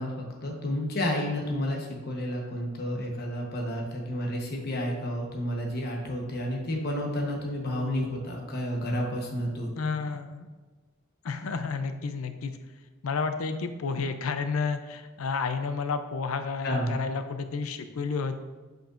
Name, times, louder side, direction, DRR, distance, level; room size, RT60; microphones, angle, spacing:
voice 1, 0.0-9.7 16.6-16.9, left 1 dB, 50° left, 0 dB, 1.1 m, -31 dB
voice 2, 9.7-10.5 11.2-12.6 13.0-18.4, left 5 dB, 85° left, 9 dB, 0.5 m, -31 dB
7.5 x 5.2 x 2.5 m, 1.4 s
head